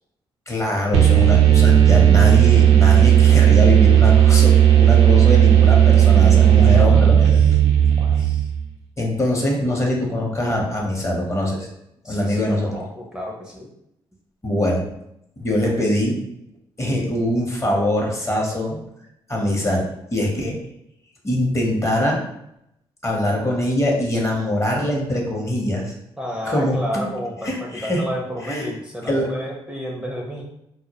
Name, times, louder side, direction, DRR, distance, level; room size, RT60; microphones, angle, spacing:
voice 1, 0.5-7.4 9.0-11.7 12.0-12.7 14.4-14.9 15.4-16.2 16.8-18.8 19.3-20.6 21.2-22.2 23.0-25.9 26.4-27.0 27.5-28.0 28.4-28.7 29.1-29.3, left 1 dB, 30° left, -1 dB, 0.7 m, -22 dB
sound 1, 0.9-8.6, right 10 dB, 85° right, 0.4 m, -13 dB
voice 2, 6.0-7.6 8.0-8.5 12.0-13.7 26.2-30.5, equal, 5° right, -2 dB, 0.4 m, -32 dB
2.1 x 2.0 x 2.8 m, 0.80 s
cardioid pair, 65°, 10 cm